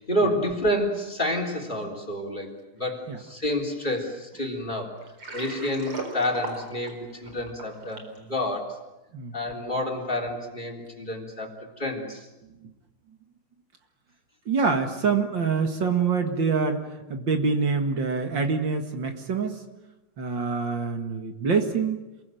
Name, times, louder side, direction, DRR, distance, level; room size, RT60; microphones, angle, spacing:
voice 1, 0.0-5.0 5.3-8.8 9.3-12.3, left 1 dB, 20° left, 4 dB, 3.8 m, -29 dB
Water, 5.0-8.2, right 2 dB, 85° right, 5.2 m, -37 dB
voice 2, 14.5-19.6 20.2-22.0, right 5 dB, 60° right, 6 dB, 2.5 m, -25 dB
28.0 x 22.0 x 9.2 m, 1.0 s
omnidirectional pair, 2.3 m